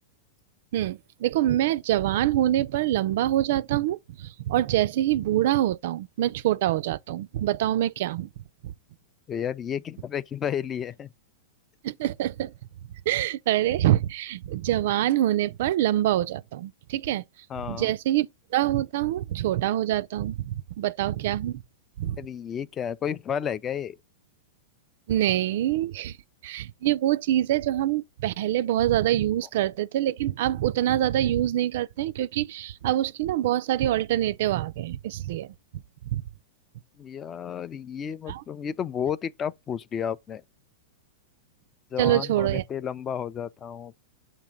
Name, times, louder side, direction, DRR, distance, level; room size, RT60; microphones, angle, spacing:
voice 1, 0.7-8.3 8.6-8.7 11.8-12.5 13.1-17.2 17.7-21.6 22.0-22.2 25.1-26.2 26.4-35.8 36.1-36.2 38.3-38.4 42.0-42.6, right 13 dB, 60° right, 0.3 m, -25 dB
voice 2, 9.3-11.1 17.5-17.9 22.0-24.0 37.0-40.4 41.9-43.9, left 8 dB, 25° left, 0.3 m, -32 dB
7.2 x 2.8 x 5.0 m
hypercardioid pair, 100°, 0 cm